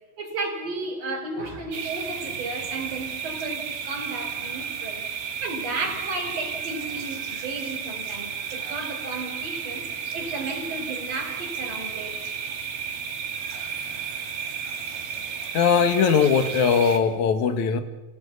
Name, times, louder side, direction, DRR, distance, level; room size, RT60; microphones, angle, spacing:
voice 1, 0.2-5.1 5.4-9.9 10.1-12.3, right 2 dB, 45° right, 5.1 m, -33 dB
sound 1, 1.7-17.0, right 7 dB, 80° right, 4.4 m, -33 dB
voice 2, 15.5-17.8, left 6 dB, 60° left, 2.4 m, -20 dB
29.0 x 17.5 x 8.3 m
omnidirectional pair, 4.3 m